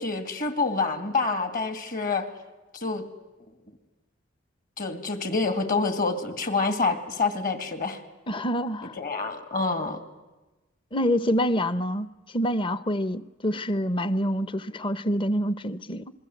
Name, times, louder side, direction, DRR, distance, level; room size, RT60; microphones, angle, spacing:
voice 1, 0.0-2.3 2.7-3.0 4.8-8.0 9.0-10.0, left 3 dB, 45° left, 2.4 m, -27 dB
voice 2, 8.3-9.0 10.9-12.1 12.3-16.1, equal, 25° left, 0.8 m, -26 dB
27.0 x 21.5 x 7.9 m
head